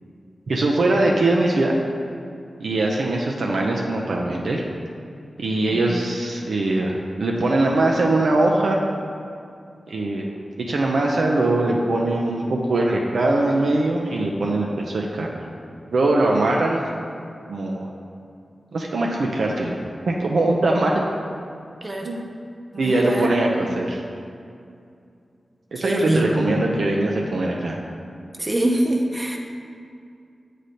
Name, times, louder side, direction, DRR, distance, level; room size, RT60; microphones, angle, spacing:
voice 1, 0.5-1.8 2.6-4.6 5.4-8.8 9.9-10.3 10.6-15.4 15.9-16.8 17.5-17.9 18.7-19.8 20.1-21.0 22.0-22.2 22.8-24.0 25.7-27.8, right 2 dB, 80° right, -1 dB, 0.5 m, -21 dB
voice 2, 21.8-22.2 22.7-23.4 25.8-26.5 28.4-29.4, right 1 dB, 25° right, 1 dB, 0.7 m, -24 dB
7.7 x 3.3 x 4.1 m, 2.4 s
wide cardioid pair, 85°, 0 cm